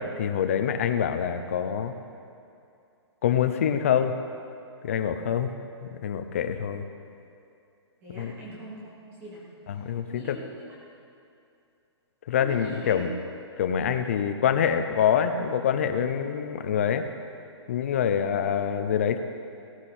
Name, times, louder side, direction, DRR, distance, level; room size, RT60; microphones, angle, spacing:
voice 1, 0.0-1.9 3.2-4.2 4.8-5.5 5.8-6.9 8.2-8.3 9.7-10.4 12.3-13.1 13.6-17.1 17.7-19.2, left 8 dB, 30° left, 8 dB, 0.6 m, -25 dB
voice 2, 8.0-10.5 12.4-13.1 18.1-18.5, equal, 15° right, -6 dB, 2.6 m, -42 dB
19.0 x 11.0 x 4.3 m, 2.6 s
hypercardioid pair, 180°, 15 cm